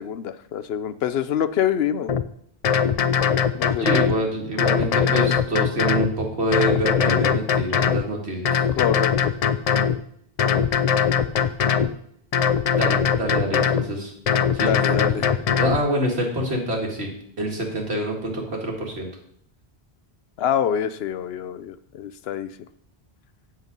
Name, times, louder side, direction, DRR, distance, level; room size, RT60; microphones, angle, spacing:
voice 1, 0.0-2.2 3.5-4.0 8.7-9.3 14.6-15.3 20.4-22.5, left 9 dB, 75° left, 14 dB, 0.8 m, -26 dB
sound 1, 2.1-2.2 2.6-4.2 4.6-6.1 6.5-8.0 8.4-10.0 10.4-11.9 12.3-13.8 14.3-15.8, left 7 dB, 55° left, 0.4 m, -21 dB
voice 2, 3.8-8.6 12.7-14.1 14.5-15.3 15.6-17.1 17.4-19.1, right 1 dB, 85° right, 0 dB, 2.3 m, -26 dB
7.8 x 7.5 x 5.3 m, 0.67 s
omnidirectional pair, 1.1 m